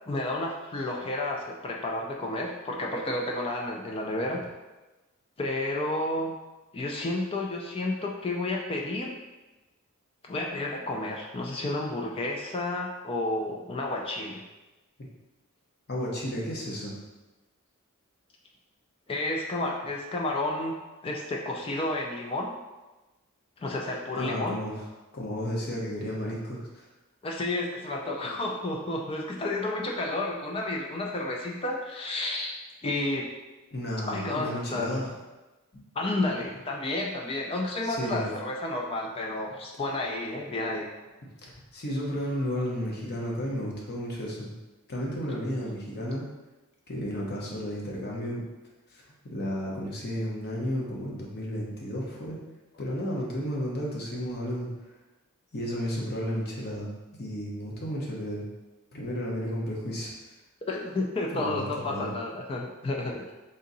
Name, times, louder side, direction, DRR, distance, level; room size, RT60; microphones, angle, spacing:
voice 1, 0.1-4.4 5.4-6.4 6.7-9.2 10.2-14.4 19.1-20.8 21.0-22.5 23.6-24.6 27.2-33.3 34.1-34.9 36.0-40.9 60.7-63.3, left 2 dB, 25° left, 0 dB, 0.3 m, -31 dB
voice 2, 15.9-16.9 24.1-24.8 25.1-26.8 33.7-35.1 35.7-35.8 37.8-38.3 41.4-44.5 44.9-46.3 46.9-48.4 48.9-52.4 52.8-54.7 55.5-58.4 58.9-60.1 61.3-62.1, equal, 45° left, -3 dB, 0.9 m, -33 dB
3.7 x 2.7 x 3.9 m, 1.1 s
head